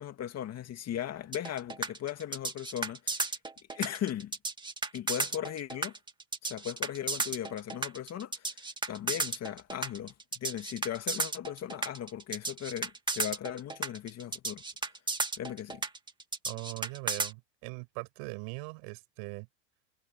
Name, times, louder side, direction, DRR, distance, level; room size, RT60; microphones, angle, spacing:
voice 1, 0.0-3.4 3.7-4.3 4.9-5.9 6.4-14.6 15.4-15.8, left 10 dB, 35° left, 2.4 m, -38 dB
sound 1, 1.3-17.3, right 3 dB, 10° right, 2.1 m, -34 dB
voice 2, 16.5-19.5, right 36 dB, 60° right, 7.0 m, -41 dB
supercardioid pair, 120°, 45 cm